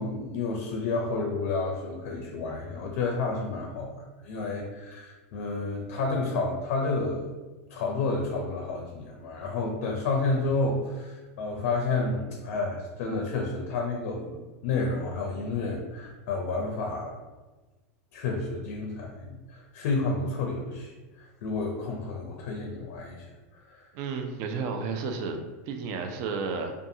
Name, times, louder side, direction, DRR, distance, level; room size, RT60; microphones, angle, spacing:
voice 1, 0.0-3.9 4.2-7.3 7.7-17.2 18.1-23.9, left 3 dB, 70° left, 1 dB, 0.4 m, -30 dB
voice 2, 23.9-25.4 25.7-26.7, right 4 dB, 50° right, 5 dB, 0.4 m, -32 dB
2.6 x 2.3 x 2.6 m, 1.2 s
supercardioid pair, 120°, 8 cm